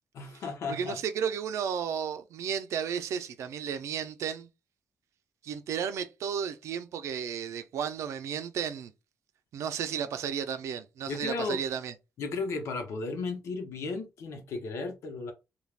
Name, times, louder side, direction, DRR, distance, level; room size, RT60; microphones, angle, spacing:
voice 1, 0.1-1.0 11.1-11.6 12.2-15.3, left 3 dB, 80° left, 0.8 m, -34 dB
voice 2, 0.7-4.5 5.4-8.9 9.5-11.9, right 8 dB, 85° right, 0.5 m, -33 dB
3.3 x 2.3 x 2.4 m
wide cardioid pair, 135°, 5 cm